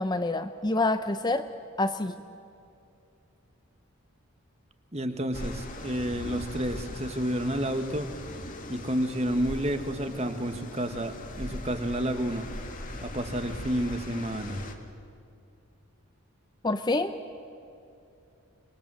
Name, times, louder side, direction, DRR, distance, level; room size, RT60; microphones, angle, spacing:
voice 1, 0.0-1.5 1.8-2.1 16.6-17.1, left 2 dB, 20° left, 9 dB, 0.6 m, -27 dB
voice 2, 4.9-8.1 8.7-12.5 13.0-14.6, right 1 dB, 30° right, 7 dB, 1.5 m, -30 dB
sound 1, 5.3-14.7, left 1 dB, 35° left, 1.8 m, -40 dB
26.0 x 21.5 x 7.7 m, 2.6 s
head